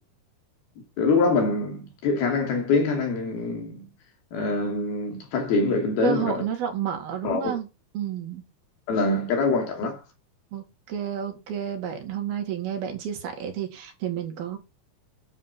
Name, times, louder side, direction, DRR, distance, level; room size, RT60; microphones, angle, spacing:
voice 1, 1.0-3.9 4.3-6.4 7.2-7.6 8.9-10.0, left 3 dB, 80° left, 4.7 m, -24 dB
voice 2, 6.0-7.7 7.9-8.4 10.5-14.6, right 8 dB, 75° right, 4.0 m, -30 dB
9.9 x 7.6 x 6.0 m
omnidirectional pair, 4.3 m